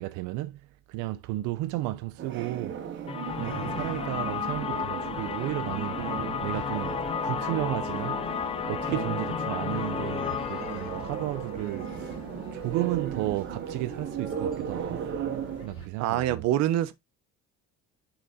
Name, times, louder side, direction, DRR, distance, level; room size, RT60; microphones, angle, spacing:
voice 1, 0.0-2.8 3.4-8.3 8.7-12.2 12.5-15.1 15.6-16.5, right 17 dB, 85° right, 0.5 m, -33 dB
sound 1, 2.2-15.7, right 8 dB, 40° right, 1.0 m, -37 dB
sound 2, 3.1-12.8, left 7 dB, 20° left, 0.4 m, -33 dB
sound 3, 3.3-15.9, left 3 dB, 45° left, 2.4 m, -48 dB
voice 2, 3.4-3.9 6.0-6.3 8.9-9.3 16.0-16.9, right 12 dB, 60° right, 0.9 m, -28 dB
6.7 x 4.1 x 3.5 m
cardioid pair, 170°, 29 cm